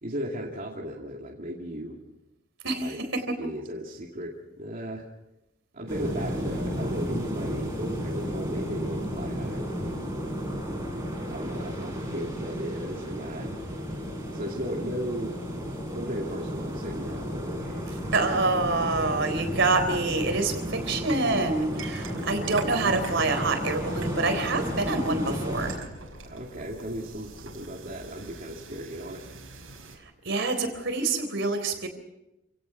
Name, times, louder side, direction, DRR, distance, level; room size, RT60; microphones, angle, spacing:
voice 1, 0.0-2.0 2.8-3.0 3.4-5.1 5.7-10.1 11.3-13.5 14.3-15.4 15.9-17.8 26.2-29.2, equal, 45° right, -2 dB, 2.5 m, -36 dB
voice 2, 2.6-3.5 18.1-25.8 30.2-31.9, right 3 dB, 60° right, 7 dB, 3.8 m, -26 dB
sound 1, 5.9-25.8, equal, 15° right, 4.9 m, -33 dB
sound 2, 20.0-30.0, right 3 dB, 85° right, 5.3 m, -44 dB
28.5 x 17.5 x 5.9 m, 0.89 s
head